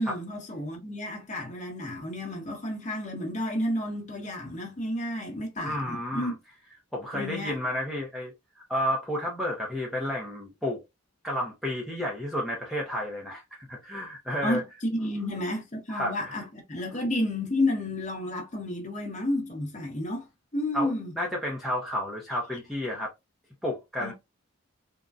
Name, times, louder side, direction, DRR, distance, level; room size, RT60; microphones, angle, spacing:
voice 1, 0.0-6.4 7.1-7.6 14.4-20.3 20.5-21.1 24.0-24.1, left 1 dB, 35° left, 1.0 m, -31 dB
voice 2, 5.6-6.3 6.9-10.8 11.2-14.6 15.9-16.4 20.7-23.1 23.6-24.1, left 1 dB, ahead, 0.6 m, -31 dB
3.7 x 2.2 x 2.4 m
head